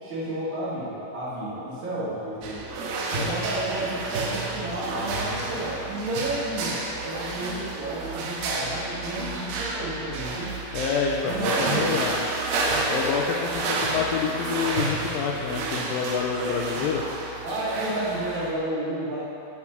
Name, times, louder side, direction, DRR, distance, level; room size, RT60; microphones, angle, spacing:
voice 1, 0.0-2.7 3.1-10.6 11.2-12.1 17.4-19.3, right 1 dB, 55° right, -9 dB, 3.3 m, -31 dB
sound 1, 2.4-18.5, right 3 dB, 90° right, 2.9 m, -30 dB
voice 2, 10.7-12.2 12.9-17.0, left 6 dB, 80° left, 0 dB, 2.1 m, -28 dB
9.6 x 5.9 x 5.9 m, 2.8 s
omnidirectional pair, 4.4 m